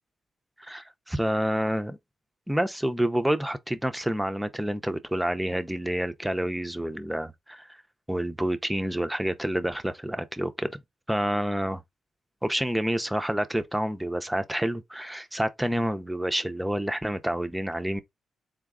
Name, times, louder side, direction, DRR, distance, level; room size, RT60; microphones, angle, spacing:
voice 1, 0.6-2.0 2.5-7.8 8.1-10.8 11.1-11.8 12.4-18.0, right 1 dB, 5° right, 0.5 m, -28 dB
3.9 x 2.3 x 3.6 m
cardioid pair, 85°, 0 cm